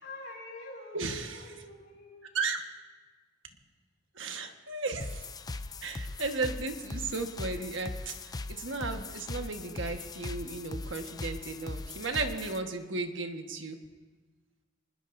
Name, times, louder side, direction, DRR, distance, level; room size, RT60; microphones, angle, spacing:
voice 1, 0.0-2.3, left 2 dB, 65° left, -2 dB, 5.9 m, -46 dB
voice 2, 0.9-1.5 2.3-2.6 4.1-5.3 5.8-8.1 8.5-13.8, right 3 dB, 90° right, 5 dB, 1.4 m, -35 dB
sound 1, 5.0-12.6, left 3 dB, 20° left, 0.4 m, -40 dB
24.5 x 20.0 x 2.7 m, 1.3 s
head